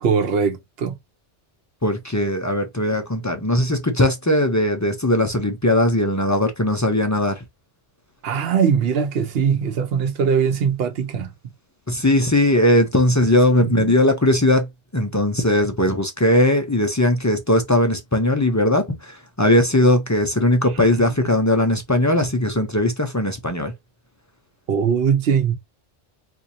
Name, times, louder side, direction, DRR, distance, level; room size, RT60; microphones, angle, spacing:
voice 1, 0.0-1.0 8.2-11.3 13.6-13.9 20.8-20.9 24.7-25.6, right 6 dB, 65° right, 0.9 m, -21 dB
voice 2, 1.8-7.4 11.9-14.7 14.9-23.7, left 1 dB, 25° left, 0.4 m, -19 dB
4.3 x 2.6 x 2.7 m
omnidirectional pair, 1.2 m